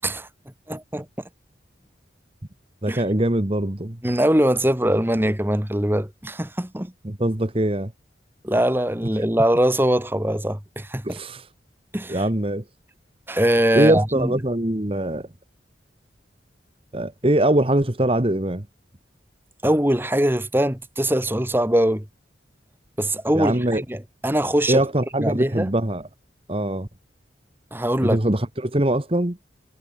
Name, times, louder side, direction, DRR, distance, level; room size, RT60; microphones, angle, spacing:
voice 1, 0.7-1.1 2.9-3.0 4.0-6.9 8.4-11.2 11.9-12.2 13.3-14.3 19.6-22.1 23.0-24.8 25.2-25.7 27.7-28.2, right 1 dB, 10° right, 2.2 m, -22 dB
voice 2, 2.8-4.0 7.0-7.9 11.0-11.5 12.1-12.6 13.7-15.3 16.9-18.7 23.3-23.8 24.7-26.1 26.5-26.9 28.0-29.4, right 1 dB, 30° right, 1.4 m, -22 dB
head